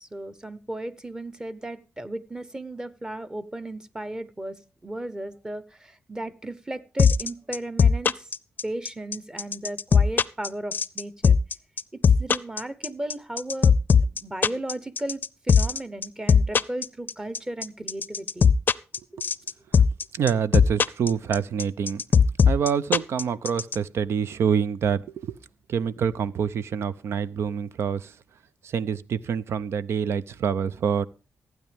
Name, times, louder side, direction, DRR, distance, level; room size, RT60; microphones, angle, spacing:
voice 1, 0.0-8.2 8.6-11.4 12.2-13.7 14.0-18.5, right 1 dB, 15° right, 1.0 m, -35 dB
sound 1, 7.0-23.8, left 6 dB, 45° left, 0.5 m, -18 dB
voice 2, 20.1-22.0 22.4-25.4 25.7-28.1 28.6-31.1, right 7 dB, 75° right, 0.6 m, -26 dB
15.0 x 9.3 x 3.5 m
cardioid pair, 95°, 4 cm